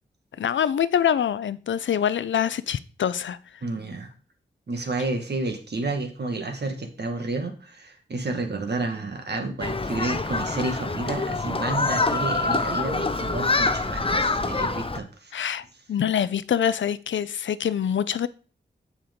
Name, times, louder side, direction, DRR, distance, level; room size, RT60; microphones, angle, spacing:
voice 1, 0.4-3.6 15.3-18.3, left 9 dB, 75° left, 16 dB, 0.5 m, -25 dB
voice 2, 3.6-4.1 4.7-15.4, right 2 dB, 60° right, 5 dB, 1.8 m, -30 dB
Human group actions, 9.6-15.0, left 3 dB, 30° left, 0.7 m, -25 dB
8.1 x 6.9 x 3.7 m, 0.38 s
cardioid pair, 45°, 20 cm